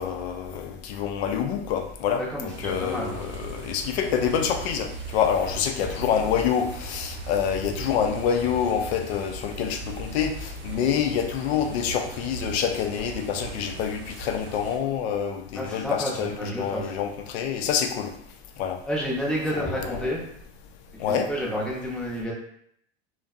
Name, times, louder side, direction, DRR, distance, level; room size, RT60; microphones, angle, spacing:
voice 1, 0.0-18.1 18.6-18.8 19.5-20.1 21.0-21.3, left 8 dB, 70° left, 5 dB, 0.5 m, -27 dB
voice 2, 2.2-3.2 15.5-16.9 18.9-20.3 21.1-22.3, equal, ahead, -5 dB, 0.7 m, -30 dB
sound 1, 2.5-14.8, right 3 dB, 35° right, 0.6 m, -39 dB
2.6 x 2.1 x 2.4 m, 0.69 s
hypercardioid pair, 100°, 33 cm